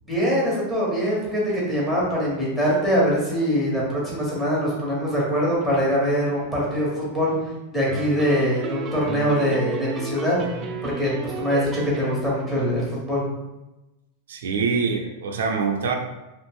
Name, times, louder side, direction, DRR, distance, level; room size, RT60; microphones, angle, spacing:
voice 1, 0.0-7.3 7.7-10.4 10.8-13.2, equal, 5° left, -7 dB, 1.2 m, -23 dB
sound 1, 7.9-12.5, right 4 dB, 30° right, 0.4 m, -33 dB
voice 2, 14.3-15.9, right 5 dB, 90° right, 3 dB, 0.5 m, -24 dB
2.5 x 2.5 x 3.6 m, 1.0 s
supercardioid pair, 145°, 0 cm